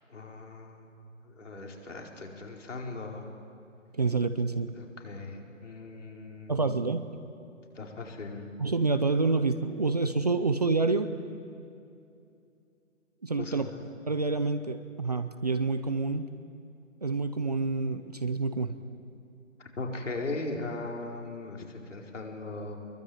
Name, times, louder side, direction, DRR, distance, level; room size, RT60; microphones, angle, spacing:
voice 1, 0.1-0.9 1.2-3.3 4.8-6.6 7.7-8.4 13.4-13.8 19.6-22.8, left 2 dB, 60° left, 0 dB, 5.0 m, -38 dB
voice 2, 3.9-4.7 6.5-7.0 8.6-11.1 13.2-13.7 14.0-16.3 17.0-18.7, right 3 dB, 30° right, 10 dB, 0.7 m, -28 dB
24.0 x 23.0 x 9.3 m, 2.6 s
figure-of-eight pair, 165°, 40 cm